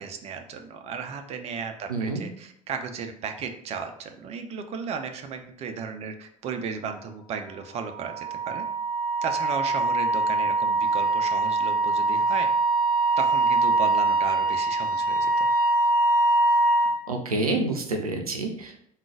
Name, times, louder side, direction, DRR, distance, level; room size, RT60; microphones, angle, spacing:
voice 1, 0.0-8.6 9.2-12.5 13.2-15.5, right 6 dB, 35° right, 6 dB, 0.5 m, -35 dB
voice 2, 1.9-2.2 17.1-18.8, right 2 dB, 85° right, 3 dB, 0.5 m, -28 dB
Wind instrument woodwind instrument, 7.5-17.0, right 2 dB, 10° right, 1.5 m, -23 dB
3.7 x 2.4 x 4.6 m, 0.68 s
figure-of-eight pair, 60°, 18 cm